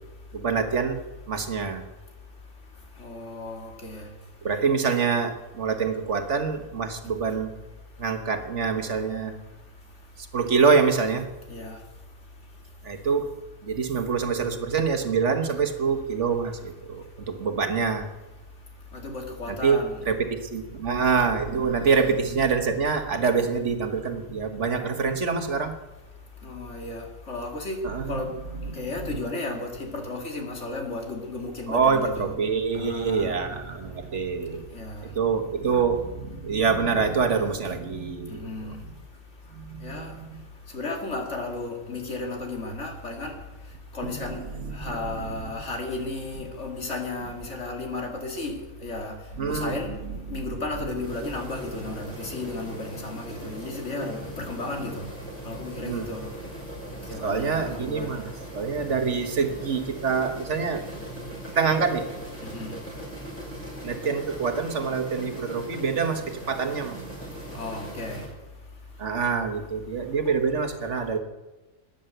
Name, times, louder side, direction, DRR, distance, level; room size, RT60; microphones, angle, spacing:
voice 1, 0.3-1.0 1.3-1.8 4.4-7.5 8.0-9.4 10.3-11.3 12.8-13.3 13.6-18.1 19.5-25.8 27.8-28.2 31.7-34.7 35.0-38.7 39.5-40.4 44.0-45.5 49.4-49.8 50.3-50.4 55.8-56.1 57.2-60.8 61.5-62.1 63.8-67.0 69.0-71.2, right 5 dB, 65° right, 7 dB, 1.7 m, -26 dB
voice 2, 3.0-4.1 11.5-11.8 19.0-19.9 26.4-27.8 28.1-28.3 28.8-32.3 32.7-33.3 34.7-35.0 38.3-38.8 39.8-40.1 40.7-43.3 43.9-44.4 44.7-49.1 49.5-49.9 50.3-55.0 55.4-56.3 57.1-58.2 62.5-62.7 67.5-68.2, left 2 dB, 60° left, 3 dB, 2.7 m, -34 dB
sound 1, 51.0-68.3, right 1 dB, 10° left, 5.8 m, -40 dB
14.0 x 10.5 x 7.9 m, 1.1 s
omnidirectional pair, 1.4 m